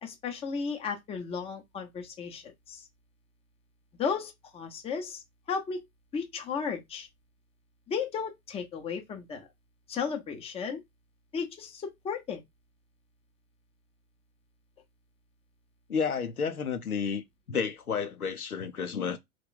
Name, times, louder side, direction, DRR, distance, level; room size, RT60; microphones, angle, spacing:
voice 1, 0.0-2.8 4.0-5.2 5.5-5.9 6.1-7.1 7.9-9.5 9.9-10.8 11.3-12.4, left 6 dB, 15° left, 0.7 m, -34 dB
voice 2, 15.9-19.2, left 6 dB, 90° left, 0.7 m, -31 dB
3.1 x 2.3 x 3.8 m
figure-of-eight pair, 100°, 42 cm